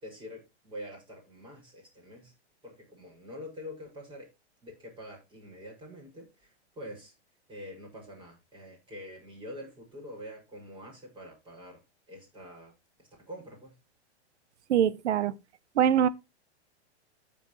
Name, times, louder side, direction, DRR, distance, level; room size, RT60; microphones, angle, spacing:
voice 1, 0.0-2.3 2.6-4.3 4.6-7.1 7.5-11.8 12.1-12.7 13.0-13.8, left 1 dB, 15° right, 5.5 m, -45 dB
voice 2, 14.7-15.3 15.8-16.1, right 9 dB, 75° right, 0.8 m, -23 dB
14.5 x 5.1 x 3.0 m
hypercardioid pair, 130°, 34 cm